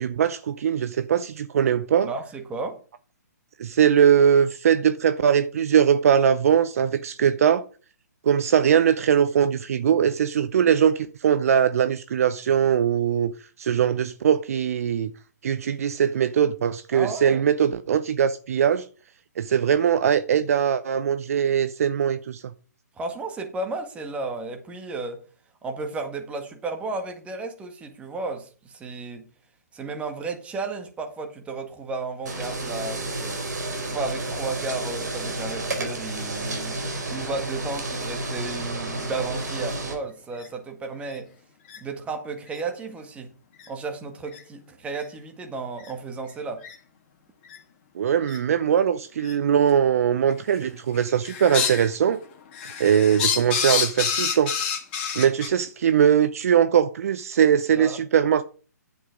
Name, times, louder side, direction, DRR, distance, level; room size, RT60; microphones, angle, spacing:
voice 1, 0.0-2.1 3.6-7.6 8.2-13.3 13.6-15.1 15.4-18.9 19.4-22.4 47.9-52.2 52.8-54.5 55.1-58.4, right 8 dB, 55° right, 0.6 m, -21 dB
voice 2, 2.0-2.8 16.9-17.4 23.0-25.2 25.6-29.2 29.7-33.4 33.9-36.8 37.1-41.3 41.8-43.3 43.7-46.6 57.8-58.0, right 3 dB, 10° right, 1.8 m, -33 dB
sound 1, 32.3-39.9, right 2 dB, 70° right, 4.2 m, -31 dB
sound 2, 39.4-39.5 40.3-40.5 41.1-41.2 41.7-41.8 42.5-42.6 43.6-43.7 44.3-44.4 44.9-45.0 45.8-45.9 46.6-46.7 47.4-47.6 48.3-48.4 49.2-49.3 50.3-50.6 50.9-51.9 52.2-55.5, left 7 dB, 35° left, 2.0 m, -28 dB
10.5 x 7.3 x 5.1 m
figure-of-eight pair, 130°, 10 cm